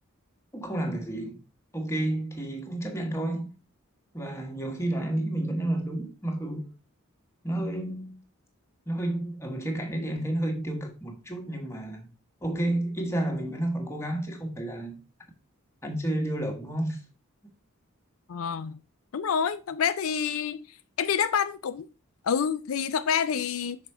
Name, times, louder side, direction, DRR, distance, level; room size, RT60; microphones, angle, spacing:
voice 1, 0.5-1.4 1.7-3.5 4.1-6.7 7.4-8.2 8.9-12.1 12.4-15.0 15.8-17.0, right 1 dB, 15° left, 1.4 m, -31 dB
voice 2, 18.3-18.7 19.1-21.9 22.2-23.8, left 7 dB, 75° left, 0.4 m, -28 dB
6.0 x 4.9 x 4.4 m
head